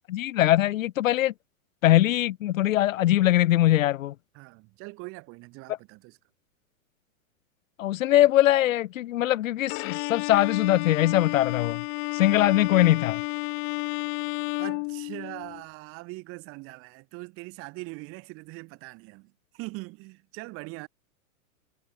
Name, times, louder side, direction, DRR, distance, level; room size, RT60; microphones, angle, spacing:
voice 1, 0.1-1.3 1.8-4.1 7.8-11.8 12.1-13.2, left 14 dB, 70° left, 0.8 m, -22 dB
voice 2, 4.3-6.2 12.5-12.6 14.6-20.9, right 25 dB, 30° right, 7.7 m, -41 dB
Bowed string instrument, 9.7-15.6, left 40 dB or more, 30° left, 1.9 m, -31 dB
supercardioid pair, 160°, 41 cm